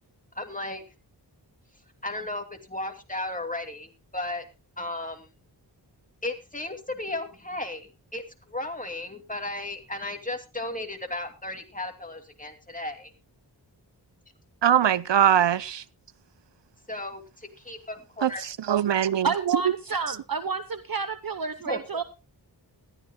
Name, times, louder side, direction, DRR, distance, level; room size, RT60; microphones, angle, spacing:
voice 1, 0.3-0.8 2.0-4.5 4.8-5.3 6.2-13.1 16.9-18.4 21.7-21.8, left 2 dB, 20° left, 2.5 m, -35 dB
voice 2, 14.6-15.8 18.2-19.3, right 9 dB, 80° right, 0.7 m, -22 dB
voice 3, 19.2-22.0, right 5 dB, 55° right, 1.0 m, -29 dB
19.5 x 14.0 x 2.2 m
wide cardioid pair, 70°, 43 cm